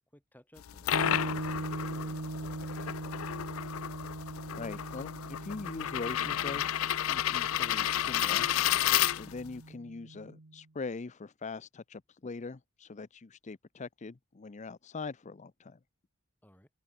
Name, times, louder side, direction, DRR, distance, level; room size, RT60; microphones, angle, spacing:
voice 1, 0.0-3.2 16.4-16.7, equal, 10° left, 4.6 m, -58 dB
sound 1, 0.6-9.6, left 12 dB, 90° left, 0.4 m, -31 dB
sound 2, 0.9-10.6, right 2 dB, 80° right, 1.2 m, -41 dB
voice 2, 4.5-8.5 9.1-15.8, left 4 dB, 35° left, 0.5 m, -42 dB
sound 3, 6.0-8.4, right 1 dB, 35° right, 3.7 m, -62 dB
open air
head